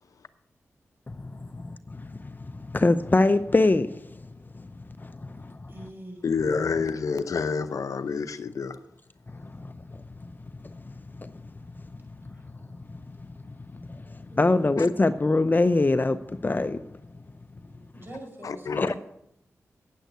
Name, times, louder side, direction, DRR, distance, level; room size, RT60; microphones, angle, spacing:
voice 1, 1.1-4.2 4.5-5.7 9.3-16.8 18.8-18.9, left 2 dB, 35° left, 0.6 m, -26 dB
voice 2, 5.3-6.2 12.2-12.5 14.1-14.7 17.7-19.0, right 1 dB, 40° right, 5.4 m, -45 dB
voice 3, 6.2-8.8 14.8-14.9 18.4-18.9, left 5 dB, 75° left, 0.7 m, -28 dB
9.2 x 9.0 x 8.0 m
cardioid pair, 40°, 6 cm